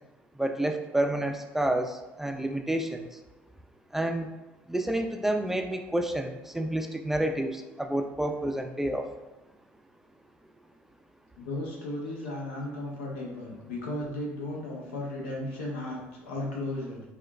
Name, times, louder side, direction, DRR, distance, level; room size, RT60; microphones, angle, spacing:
voice 1, 0.4-3.1 3.9-4.3 4.7-9.1, right 1 dB, 5° right, 4 dB, 0.3 m, -29 dB
voice 2, 11.4-17.0, left 1 dB, 85° left, -2 dB, 0.7 m, -35 dB
4.4 x 2.2 x 2.3 m, 1.1 s
hypercardioid pair, 70°, 6 cm